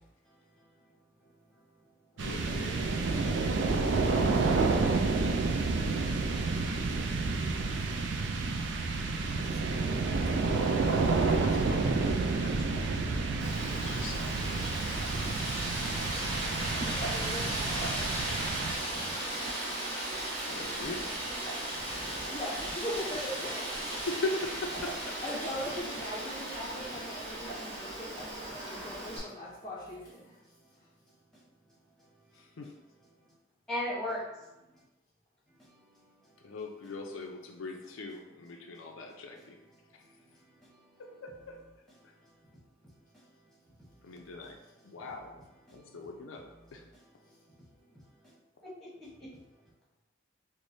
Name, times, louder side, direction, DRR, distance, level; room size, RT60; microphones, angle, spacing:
voice 1, 0.2-0.7 1.2-1.3 24.0-24.1 31.3-31.4 32.0-32.1 33.7-34.5 35.6-36.4 40.0-41.0 42.2-42.3 43.9-44.2 45.7-46.0 47.2-47.4 48.2-49.4, left 1 dB, ahead, 1.0 m, -42 dB
voice 2, 2.2-3.7 10.7-13.3 13.8-15.3 20.5-21.1 24.1-25.2 32.3-32.7 36.4-39.6 41.0-41.6 44.0-44.6 44.8-45.3 45.7-46.4 46.7-46.9, left 2 dB, 90° left, 0.5 m, -41 dB
sound 1, 2.2-19.1, right 3 dB, 65° right, 0.4 m, -30 dB
voice 3, 4.5-5.5 16.7-18.3 22.3-23.8 25.2-30.4 30.8-30.9, left 1 dB, 20° left, 0.5 m, -41 dB
Wind, 13.4-29.2, right 1 dB, 45° right, 1.4 m, -36 dB
4.7 x 2.1 x 2.7 m
head